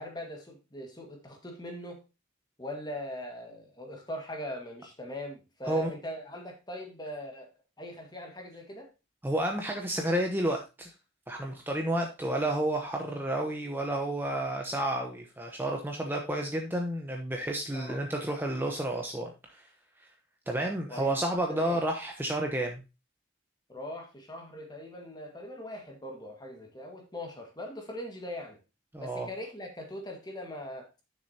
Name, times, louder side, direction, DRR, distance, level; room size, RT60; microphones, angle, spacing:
voice 1, 0.0-2.0 2.6-7.5 7.8-8.9 17.7-18.0 20.9-21.1 21.5-21.8 23.7-28.6 29.0-30.9, left 1 dB, 20° left, 3 dB, 1.7 m, -41 dB
voice 2, 9.2-10.9 11.3-19.7 20.5-22.8 28.9-29.3, right 1 dB, 10° right, 1 dB, 0.9 m, -31 dB
10.0 x 6.5 x 2.8 m, 0.27 s
head